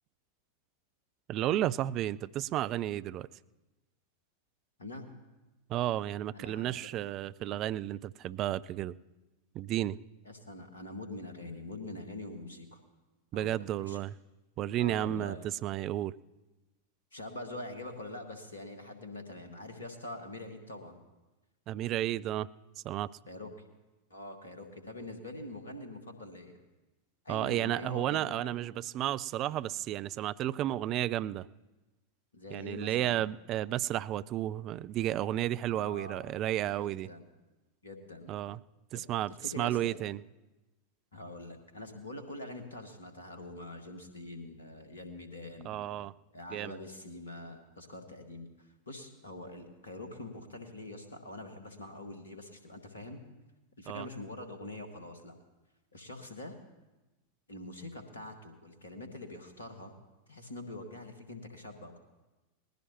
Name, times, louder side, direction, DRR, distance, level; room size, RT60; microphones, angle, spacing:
voice 1, 1.3-3.3 5.7-9.0 9.5-10.0 13.3-14.1 14.6-16.1 21.7-22.5 22.8-23.1 27.3-31.5 32.5-37.1 38.3-38.6 38.9-40.2 45.6-46.1 46.5-46.8 53.9-54.1, right 13 dB, 35° right, 16 dB, 0.4 m, -32 dB
voice 2, 6.3-6.9 10.3-12.8 13.3-14.0 14.8-15.5 17.1-21.0 23.3-23.5 24.1-26.6 27.3-28.6 32.3-33.2 35.7-36.3 36.8-37.2 37.8-38.3 38.9-39.0 39.5-40.0 41.1-45.9 46.3-53.2 53.8-55.4 55.9-56.5 57.5-59.9 60.3-62.0, left 2 dB, 70° left, 6 dB, 1.7 m, -44 dB
20.0 x 15.5 x 2.9 m, 1.1 s
figure-of-eight pair, 90°, 0 cm